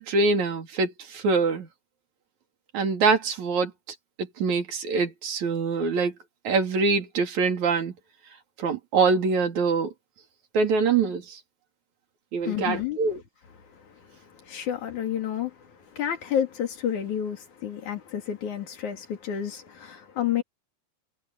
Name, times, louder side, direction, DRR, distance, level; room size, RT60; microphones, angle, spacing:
voice 1, 0.0-1.7 2.7-3.7 4.4-6.1 6.4-7.9 8.6-9.9 10.5-11.4 12.3-13.2, right 4 dB, 75° right, 4.2 m, -24 dB
voice 2, 12.4-13.0 13.7-20.4, left 9 dB, 90° left, 4.0 m, -30 dB
omnidirectional pair, 3.3 m